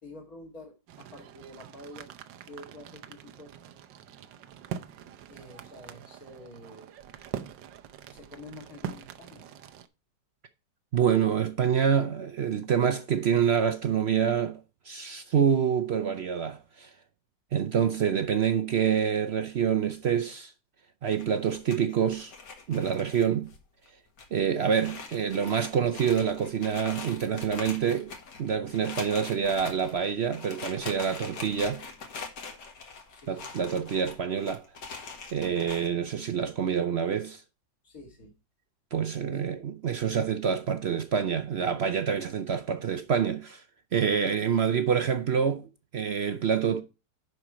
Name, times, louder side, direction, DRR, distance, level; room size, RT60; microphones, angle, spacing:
voice 1, 0.0-2.1 2.4-3.6 5.3-6.9 8.1-9.5 33.1-33.5 37.8-38.3 39.2-39.4, left 1 dB, 50° left, 2.7 m, -48 dB
sound 1, 0.9-9.9, right 9 dB, 85° right, 1.4 m, -43 dB
voice 2, 10.9-16.9 17.5-20.5 21.0-22.3 22.7-23.5 24.3-28.1 28.4-31.8 33.3-34.6 35.3-37.4 38.9-43.6 43.9-46.8, right 7 dB, 65° right, 0.6 m, -27 dB
sound 2, 21.1-23.6 23.9-24.0 24.2-24.3 24.7-35.9, left 4 dB, 70° left, 2.2 m, -42 dB
11.0 x 4.6 x 4.9 m
omnidirectional pair, 1.9 m